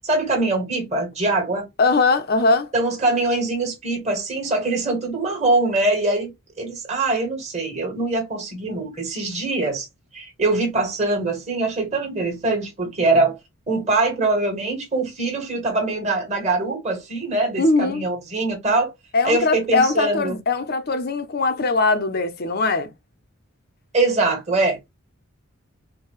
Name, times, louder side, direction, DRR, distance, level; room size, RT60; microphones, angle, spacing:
voice 1, 0.0-1.6 2.7-6.3 6.6-9.9 10.1-13.4 13.7-18.9 19.2-20.4 23.9-24.9, right 2 dB, 30° right, 1.6 m, -23 dB
voice 2, 1.8-2.7 17.6-18.0 19.1-22.9, left 3 dB, 45° left, 0.6 m, -20 dB
4.5 x 2.2 x 3.1 m
head